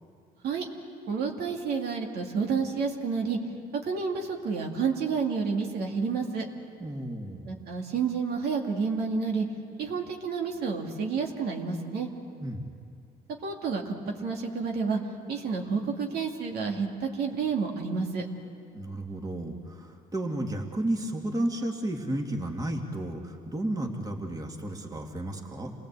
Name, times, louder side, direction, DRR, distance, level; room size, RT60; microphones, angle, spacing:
voice 1, 1.1-3.4 3.8-6.4 7.5-9.5 9.8-12.1 13.4-14.0 14.2-15.0 15.3-18.2, right 5 dB, 70° right, 1 dB, 2.4 m, -29 dB
voice 2, 6.8-7.5 12.4-12.7 18.7-25.7, right 1 dB, 20° right, 2 dB, 2.4 m, -32 dB
28.0 x 18.0 x 8.3 m, 2.3 s
cardioid pair, 110°, 17 cm